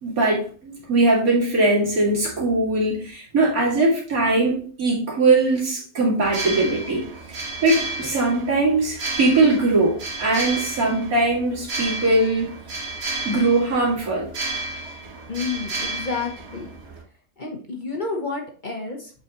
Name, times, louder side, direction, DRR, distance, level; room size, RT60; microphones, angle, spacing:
voice 1, 0.0-7.4 7.6-12.5 13.2-14.3, right 2 dB, 80° right, 2.6 m, -21 dB
sound 1, 6.2-17.0, right 2 dB, 50° right, 1.6 m, -32 dB
voice 2, 15.3-16.7 17.4-19.1, left 4 dB, 35° left, 1.0 m, -30 dB
7.6 x 4.6 x 2.9 m
omnidirectional pair, 1.5 m